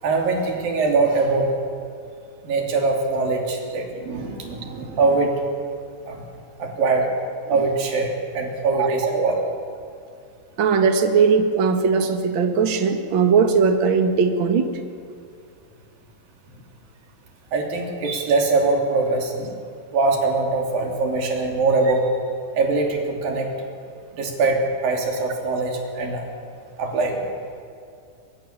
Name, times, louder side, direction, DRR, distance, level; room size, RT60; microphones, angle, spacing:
voice 1, 0.0-1.5 2.4-5.5 6.1-6.3 6.6-7.1 7.5-9.5 17.5-19.6 19.9-22.1 22.5-23.5 24.1-26.3 26.8-27.3, right 3 dB, 70° right, 1 dB, 4.8 m, -22 dB
voice 2, 10.6-14.7, right 5 dB, 45° right, 6 dB, 1.9 m, -19 dB
23.5 x 23.0 x 7.4 m, 2.4 s
omnidirectional pair, 4.2 m